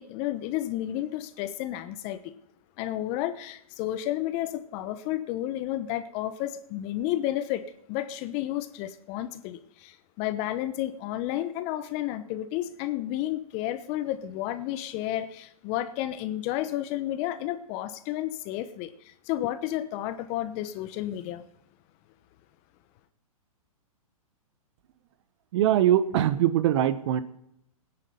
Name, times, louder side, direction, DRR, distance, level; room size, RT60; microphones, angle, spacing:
voice 1, 0.0-2.3 2.8-21.4, left 13 dB, 35° left, 1.1 m, -32 dB
voice 2, 25.5-27.2, right 11 dB, 50° right, 1.2 m, -22 dB
18.5 x 10.0 x 5.4 m
hypercardioid pair, 125°, 19 cm